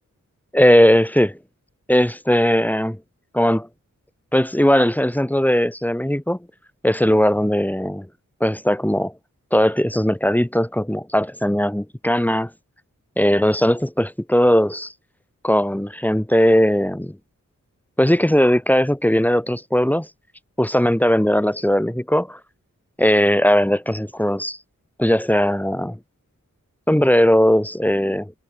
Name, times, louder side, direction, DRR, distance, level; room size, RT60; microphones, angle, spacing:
voice 1, 0.5-1.4 1.9-3.0 3.3-3.7 4.3-6.4 6.8-8.1 8.4-9.1 9.5-12.5 13.2-14.9 15.4-17.2 18.0-20.1 20.6-22.4 23.0-24.6 25.0-26.0 26.9-28.3, equal, 5° left, 1.4 m, -18 dB
cardioid pair, 45°, 32 cm